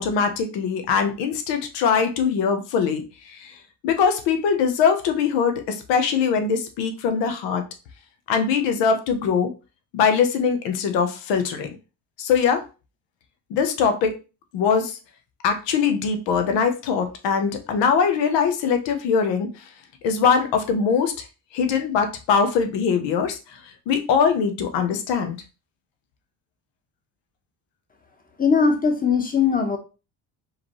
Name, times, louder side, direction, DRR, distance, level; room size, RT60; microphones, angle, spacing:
voice 1, 0.0-3.0 3.4-3.5 3.8-7.6 8.3-9.5 9.9-11.7 12.2-12.6 13.5-14.1 14.5-15.0 15.4-19.5 20.0-21.1 21.5-23.4 23.9-25.4, left 6 dB, 85° left, 6 dB, 0.9 m, -22 dB
voice 2, 28.4-29.8, left 5 dB, 20° left, 4 dB, 1.0 m, -20 dB
4.9 x 3.2 x 3.0 m, 0.30 s
cardioid pair, 120°, 42 cm